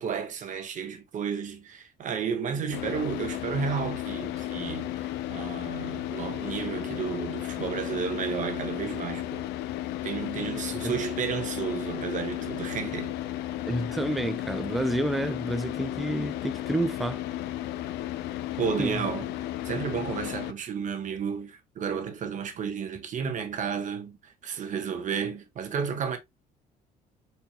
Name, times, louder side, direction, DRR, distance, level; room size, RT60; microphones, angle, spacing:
voice 1, 0.0-9.5 10.0-13.2 18.6-19.3 19.6-26.2, right 6 dB, 50° right, 0.9 m, -32 dB
Car / Idling, 2.7-20.5, left 13 dB, 85° left, 0.4 m, -34 dB
voice 2, 13.7-17.2 18.8-19.1, right 1 dB, ahead, 0.3 m, -29 dB
4.3 x 2.9 x 2.3 m
cardioid pair, 110°, 17 cm